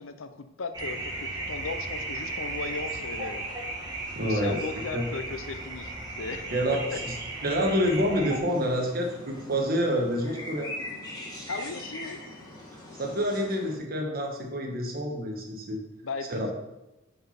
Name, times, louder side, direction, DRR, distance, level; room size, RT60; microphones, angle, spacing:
voice 1, 0.0-3.5 4.2-6.5 6.9-7.0 11.5-12.2 16.0-16.5, left 4 dB, 80° left, 9 dB, 0.7 m, -37 dB
sound 1, 0.7-8.4, right 2 dB, 20° right, 1.6 m, -35 dB
voice 2, 4.1-4.6 4.9-5.1 6.5-7.1 7.4-10.7 12.9-15.8 16.3-16.5, equal, 50° right, 1 dB, 1.3 m, -27 dB
sound 2, 8.4-13.8, left 1 dB, 20° left, 1.8 m, -41 dB
5.7 x 5.7 x 5.8 m, 0.94 s
head